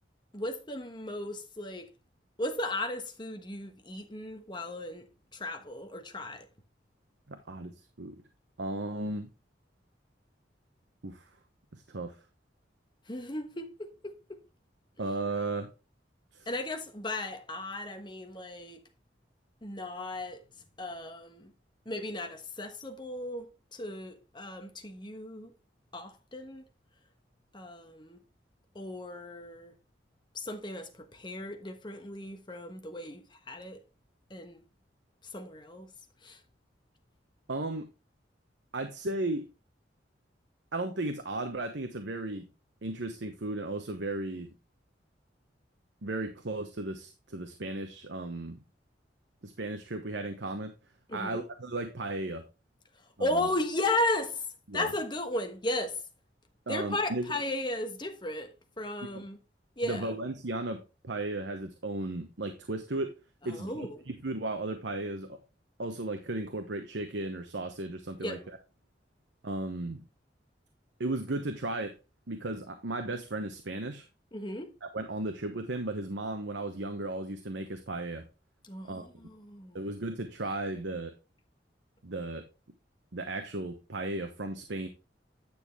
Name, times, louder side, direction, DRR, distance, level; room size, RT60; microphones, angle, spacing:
voice 1, 0.3-1.9 2.4-6.5 13.1-14.4 16.5-18.8 19.6-20.4 20.8-21.5 21.8-25.5 25.9-26.6 27.5-28.2 28.7-29.7 30.3-33.8 34.3-34.6 35.3-35.9 36.2-36.4 51.1-51.4 53.2-54.5 54.7-56.0 56.7-59.4 59.8-60.1 63.4-64.0 68.2-68.5 74.3-74.7 78.6-79.8, left 1 dB, 25° left, 1.2 m, -35 dB
voice 2, 7.3-7.7 8.0-8.2 8.6-9.3 11.0-11.3 11.7-12.2 15.0-15.7 16.3-16.5 37.5-37.9 38.7-39.5 40.7-42.5 42.8-44.5 46.0-48.6 49.4-50.7 51.1-52.4 53.2-53.3 54.7-54.9 56.7-57.3 59.8-63.1 63.4-65.4 65.8-68.4 69.4-70.0 71.0-71.9 72.3-74.1 74.8-78.3 78.9-79.1 79.7-81.1 82.0-82.4 83.1-84.9, right 2 dB, 75° right, 1.0 m, -35 dB
9.8 x 6.4 x 3.4 m
head